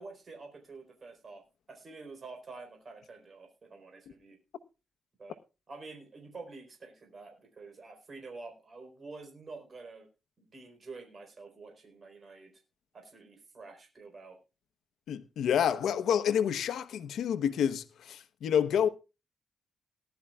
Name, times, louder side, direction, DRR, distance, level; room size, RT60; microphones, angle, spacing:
voice 1, 0.0-1.4 1.7-4.4 5.2-5.4 5.7-10.1 10.4-12.5 12.9-14.4, right 3 dB, 40° right, 4.2 m, -48 dB
voice 2, 15.1-18.9, left 8 dB, 85° left, 1.0 m, -28 dB
19.0 x 11.5 x 2.4 m
cardioid pair, 125°, 0 cm